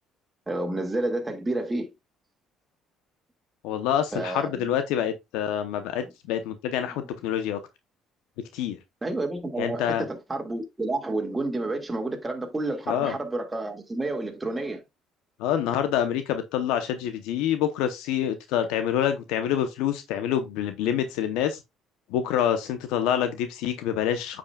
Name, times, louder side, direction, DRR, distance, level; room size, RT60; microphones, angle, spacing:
voice 1, 0.5-1.9 4.1-4.7 9.0-14.8, right 2 dB, 15° right, 1.9 m, -30 dB
voice 2, 3.6-7.6 8.5-8.8 9.6-10.0 12.9-13.1 15.4-21.6 22.1-24.4, left 10 dB, 85° left, 0.8 m, -26 dB
8.6 x 5.1 x 2.3 m
supercardioid pair, 85°, 0 cm